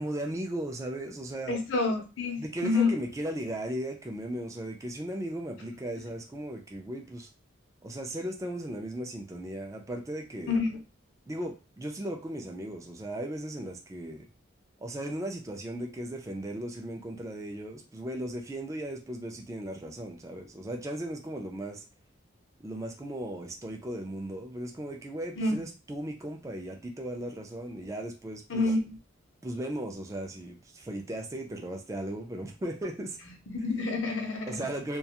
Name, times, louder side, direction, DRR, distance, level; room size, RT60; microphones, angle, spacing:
voice 1, 0.0-1.5 2.4-7.3 7.8-10.6 11.3-14.3 14.8-21.8 22.6-28.7 29.4-33.2 34.5-35.0, right 1 dB, 15° right, 1 dB, 0.3 m, -36 dB
voice 2, 1.5-3.0 10.5-10.8 25.4-25.6 28.5-29.0 33.5-34.7, left 3 dB, 70° left, 3 dB, 0.6 m, -28 dB
2.3 x 2.2 x 2.8 m, 0.32 s
head